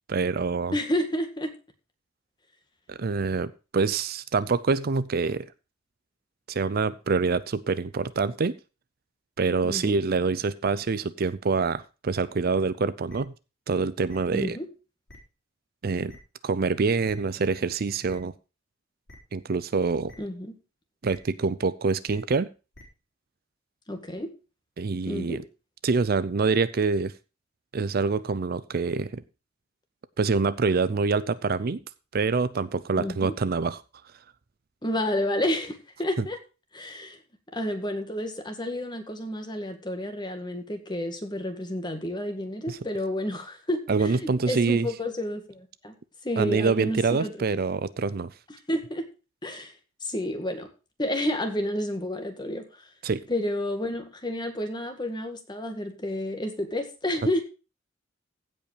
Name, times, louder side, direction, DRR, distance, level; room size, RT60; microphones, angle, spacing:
voice 1, 0.1-0.8 2.9-5.5 6.5-8.6 9.4-13.3 13.7-14.6 15.8-16.2 16.4-18.3 19.3-20.1 21.0-22.5 24.8-25.4 25.8-27.1 27.7-29.2 30.2-31.8 32.1-33.8 36.2-36.3 42.7-42.8 43.9-44.9 46.4-48.3 53.0-53.2, right 4 dB, 50° right, 16 dB, 0.5 m, -26 dB
voice 2, 0.7-1.5 9.6-10.0 14.3-14.7 20.2-20.5 23.9-24.3 25.1-25.4 33.0-33.3 34.8-36.4 36.7-37.2 37.5-45.9 46.2-47.5 48.7-49.1 49.4-49.7 50.0-50.7 51.0-52.9 53.3-57.4, left 1 dB, 25° left, 6 dB, 1.9 m, -30 dB
sound 1, 13.1-13.2 14.1-14.2 15.1-15.2 16.1-16.2 17.1-17.2 18.1-18.2 19.1-19.2 20.1-20.2 21.1-21.2 22.1-22.2 22.7-22.8, left 1 dB, 65° left, 3.9 m, -48 dB
15.5 x 5.4 x 4.9 m, 0.32 s
head